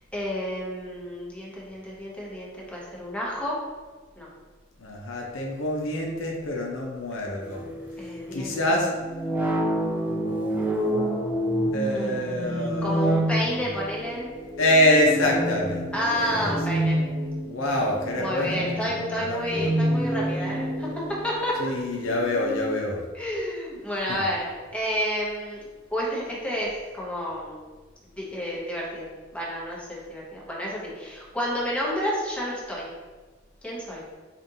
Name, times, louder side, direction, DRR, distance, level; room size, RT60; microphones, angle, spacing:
voice 1, 0.1-3.6 4.2-4.3 8.0-8.6 11.8-14.3 15.9-17.0 18.2-20.9 21.2-21.7 23.1-25.6 25.9-27.6 28.2-29.1 29.3-32.9 33.6-34.0, equal, 5° left, -5 dB, 0.8 m, -30 dB
voice 2, 4.8-7.7 8.3-8.9 11.7-13.7 14.6-16.8 17.4-19.7 21.6-23.0 24.1-24.3, left 1 dB, 80° left, 0 dB, 0.6 m, -26 dB
sound 1, 7.5-22.8, right 1 dB, 10° right, 0.4 m, -29 dB
5.0 x 2.5 x 2.7 m, 1.4 s
head